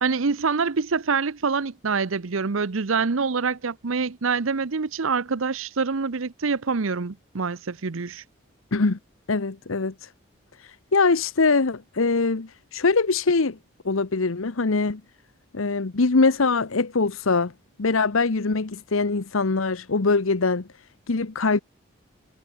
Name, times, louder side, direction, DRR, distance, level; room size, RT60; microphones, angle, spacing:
voice 1, 0.0-8.2, right 5 dB, 80° right, 0.8 m, -25 dB
voice 2, 9.3-10.1 10.9-13.6 13.8-15.0 15.5-17.5 17.8-20.7 21.1-21.6, left 3 dB, 85° left, 1.0 m, -22 dB
head